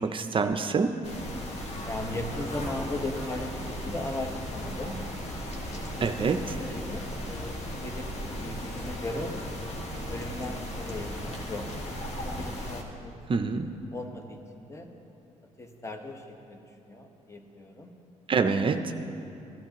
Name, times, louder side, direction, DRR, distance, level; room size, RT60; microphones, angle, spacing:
voice 1, 0.1-0.9 6.0-6.4 13.3-13.7 18.3-18.8, right 5 dB, 40° right, 7 dB, 0.6 m, -25 dB
sound 1, 1.0-12.8, left 1 dB, 55° left, 1.6 m, -36 dB
voice 2, 1.8-5.0 5.7-6.3 6.6-9.3 10.1-11.7 12.2-13.2 13.6-14.9 15.6-17.9, left 1 dB, 20° left, 4 dB, 1.2 m, -38 dB
15.5 x 11.5 x 3.0 m, 2.8 s
supercardioid pair, 75°, 14 cm